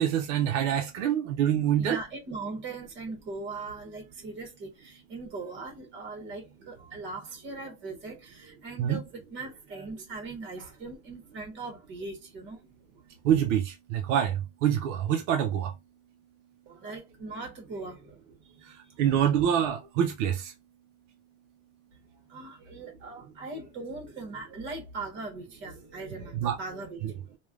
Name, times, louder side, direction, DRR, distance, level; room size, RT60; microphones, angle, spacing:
voice 1, 0.0-2.0 8.8-9.0 13.3-14.3 14.6-15.7 19.0-20.4 26.4-26.6 27.0-27.1, right 9 dB, 70° right, 0.6 m, -25 dB
voice 2, 1.8-12.7 16.7-19.0 22.3-27.2, right 3 dB, 30° right, 1.2 m, -40 dB
3.1 x 2.3 x 2.4 m
supercardioid pair, 160°, 39 cm